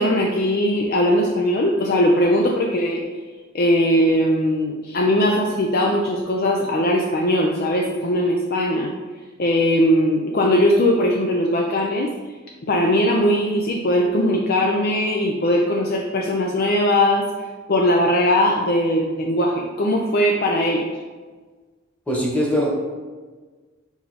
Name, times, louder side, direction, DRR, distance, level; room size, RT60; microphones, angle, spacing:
voice 1, 0.0-3.0 3.5-8.9 9.4-12.1 12.6-17.3 17.7-20.9, left 1 dB, 50° left, 0 dB, 0.5 m, -19 dB
voice 2, 22.1-22.7, equal, 5° left, -2 dB, 1.2 m, -21 dB
5.3 x 4.8 x 4.1 m, 1.4 s
head